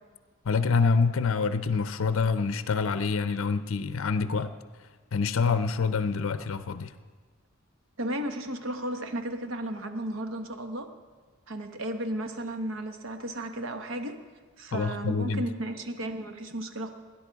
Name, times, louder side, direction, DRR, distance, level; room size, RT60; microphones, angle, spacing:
voice 1, 0.5-4.5 5.1-6.9 14.7-15.4, left 4 dB, 65° left, 12 dB, 0.5 m, -26 dB
voice 2, 8.0-10.9 11.5-14.2 14.6-16.9, right 1 dB, 65° right, 7 dB, 1.0 m, -34 dB
20.0 x 10.0 x 4.6 m, 1.4 s
head